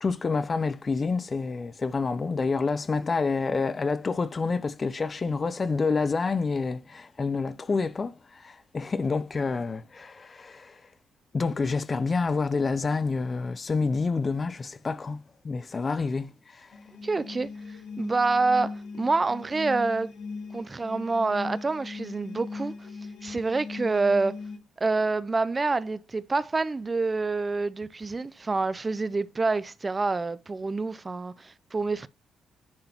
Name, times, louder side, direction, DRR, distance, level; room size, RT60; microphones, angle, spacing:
voice 1, 0.0-10.8 11.3-16.7, left 4 dB, 35° left, 0.5 m, -28 dB
sound 1, 16.7-24.6, left 4 dB, 80° left, 2.4 m, -39 dB
voice 2, 17.0-17.5 18.0-20.1 20.5-22.9 23.2-24.4 24.8-32.1, right 3 dB, 25° right, 0.4 m, -27 dB
10.5 x 3.8 x 2.9 m
cardioid pair, 90°, 0 cm